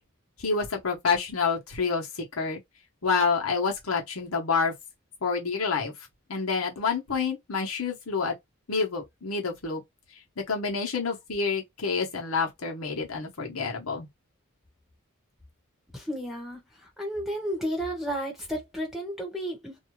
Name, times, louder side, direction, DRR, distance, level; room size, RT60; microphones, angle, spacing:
voice 1, 0.4-2.6 3.0-4.7 5.2-5.9 6.3-8.3 8.7-9.8 10.4-14.1, left 5 dB, 75° left, 1.0 m, -28 dB
voice 2, 15.9-19.8, equal, ahead, 1.0 m, -33 dB
2.7 x 2.3 x 3.1 m
head